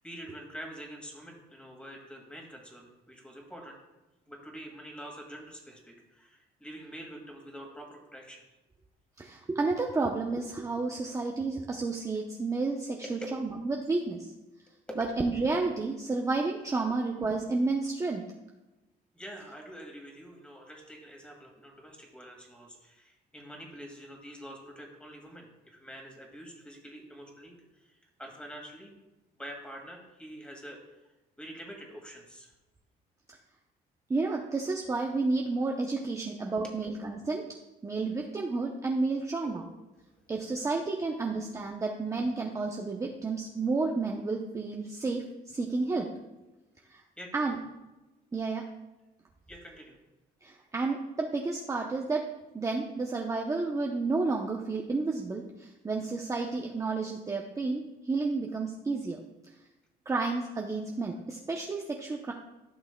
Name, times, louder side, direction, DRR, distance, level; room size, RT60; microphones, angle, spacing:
voice 1, 0.0-3.8 4.3-8.4 13.0-13.1 14.9-15.1 19.1-29.0 29.4-31.0 31.4-32.5 39.4-39.6 40.0-40.3 46.8-46.9 47.2-47.3 49.5-50.0, equal, 5° left, 1 dB, 2.1 m, -46 dB
voice 2, 9.2-14.3 15.0-18.2 34.1-37.4 37.8-39.6 40.3-46.1 46.9-47.0 47.3-47.6 48.3-48.6 50.4-52.2 52.5-59.2 60.1-62.3, right 3 dB, 20° right, 0 dB, 0.7 m, -31 dB
14.5 x 5.9 x 2.2 m, 1.1 s
cardioid pair, 110°, 17 cm